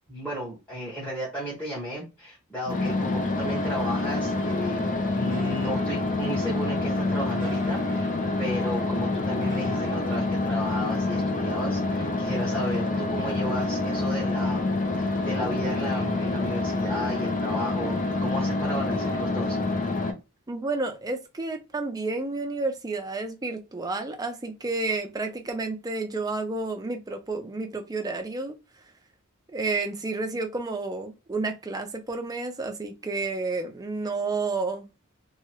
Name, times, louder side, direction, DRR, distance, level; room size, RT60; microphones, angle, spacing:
voice 1, 0.1-8.1 8.4-19.6, equal, 5° left, 1.1 m, -34 dB
sound 1, 2.7-20.1, left 2 dB, 40° left, 0.6 m, -27 dB
sound 2, 3.5-10.0, left 2 dB, 70° left, 1.6 m, -43 dB
voice 2, 20.5-28.5 29.5-34.9, right 3 dB, 20° right, 0.5 m, -30 dB
2.9 x 2.3 x 3.0 m
head